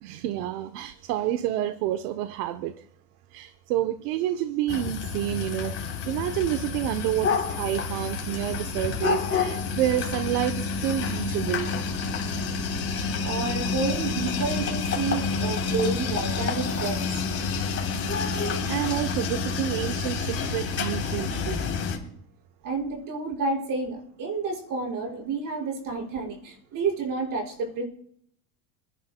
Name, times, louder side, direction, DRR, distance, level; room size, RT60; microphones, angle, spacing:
voice 1, 0.0-2.7 3.3-11.9 15.7-15.8 16.4-16.5 17.5-17.7 18.1-18.4 18.6-21.6, right 12 dB, 80° right, 0.9 m, -29 dB
sound 1, 4.7-22.0, left 5 dB, 30° left, 3.5 m, -29 dB
voice 2, 12.9-17.1 22.6-27.8, right 4 dB, 45° right, 5.4 m, -30 dB
28.0 x 10.5 x 2.2 m
supercardioid pair, 135°, 46 cm